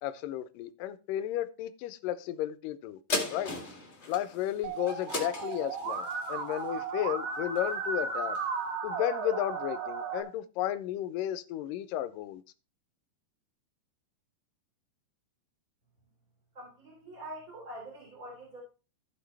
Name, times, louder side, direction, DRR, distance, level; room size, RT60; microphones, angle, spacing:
voice 1, 0.0-3.0 3.3-3.5 4.1-8.4 8.8-12.4, left 12 dB, 80° left, 2.2 m, -33 dB
sound 1, 3.1-7.9 8.3-8.4, left 2 dB, 30° left, 1.4 m, -37 dB
Musical instrument, 4.6-10.2, right 5 dB, 90° right, 3.6 m, -35 dB
voice 2, 16.5-18.6, right 1 dB, 25° right, 3.8 m, -45 dB
15.0 x 5.7 x 3.3 m
omnidirectional pair, 4.1 m